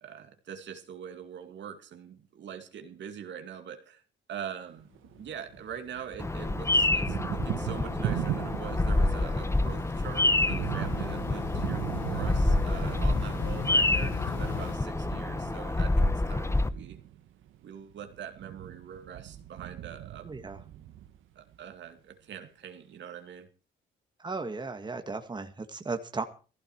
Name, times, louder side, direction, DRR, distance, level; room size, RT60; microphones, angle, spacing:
voice 1, 0.0-4.0 4.3-4.9 5.2-17.0 17.6-20.4 21.4-23.5, right 8 dB, 65° right, 6 dB, 2.3 m, -43 dB
Thunder, 4.8-6.0 6.3-21.5, right 13 dB, 80° right, 1.2 m, -39 dB
sound 1, 4.9-14.8, left 5 dB, 80° left, 5.9 m, -39 dB
Bird vocalization bird call bird song, 6.2-16.7, left 2 dB, 15° left, 1.0 m, -28 dB
voice 2, 20.2-20.6 24.2-26.2, right 3 dB, 20° right, 6 dB, 1.9 m, -35 dB
15.5 x 15.5 x 4.7 m, 0.37 s
cardioid pair, 90°, 20 cm